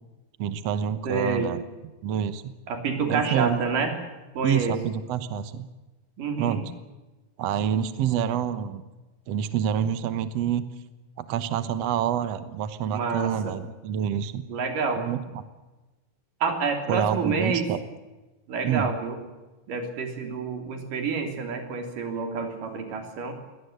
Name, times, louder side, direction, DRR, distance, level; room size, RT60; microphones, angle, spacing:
voice 1, 0.4-1.6 2.0-2.5 3.1-3.6 4.4-5.7 6.4-6.7 7.4-8.8 9.3-10.7 11.2-14.4 15.0-15.4 16.9-17.8 18.6-18.9, right 9 dB, 60° right, 12 dB, 1.9 m, -27 dB
voice 2, 1.0-1.5 2.7-3.9 4.3-4.8 6.2-6.6 12.9-13.5 14.5-15.0 16.4-17.7 18.5-19.2 19.7-23.3, right 4 dB, 80° right, 5 dB, 4.9 m, -28 dB
23.0 x 18.0 x 8.1 m, 1.1 s
omnidirectional pair, 3.8 m